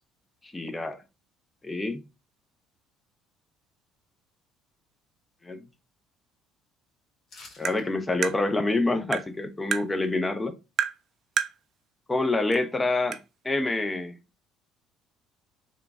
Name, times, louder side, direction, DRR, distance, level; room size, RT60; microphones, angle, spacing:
voice 1, 0.5-1.0 1.6-2.0 5.4-5.6 7.6-10.6 12.1-13.2 13.4-14.2, left 2 dB, 15° left, 0.6 m, -27 dB
sound 1, 7.3-7.9 8.2-8.3, left 3 dB, 55° left, 1.4 m, -48 dB
Tap, 7.6-7.8 8.2-8.4 9.1-9.3 9.7-9.9 10.8-11.0 11.4-11.6 12.5-12.6 13.1-13.2, right 8 dB, 50° right, 0.4 m, -27 dB
3.7 x 2.3 x 3.6 m
supercardioid pair, 75°, 0 cm